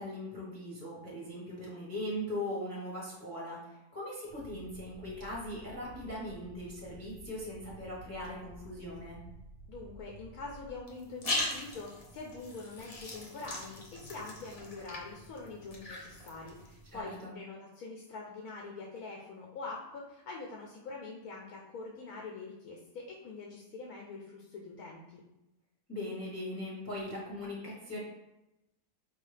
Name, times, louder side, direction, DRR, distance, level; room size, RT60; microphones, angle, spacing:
voice 1, 0.0-9.2 16.9-17.3 25.9-28.0, left 1 dB, 10° left, -5 dB, 0.9 m, -40 dB
sound 1, 4.3-10.8, right 1 dB, 60° right, 0.9 m, -52 dB
voice 2, 9.7-25.2, left 3 dB, 70° left, -1 dB, 1.1 m, -44 dB
sound 2, 10.9-17.0, left 2 dB, 50° left, 0.4 m, -40 dB
4.7 x 2.8 x 3.2 m, 0.93 s
omnidirectional pair, 1.7 m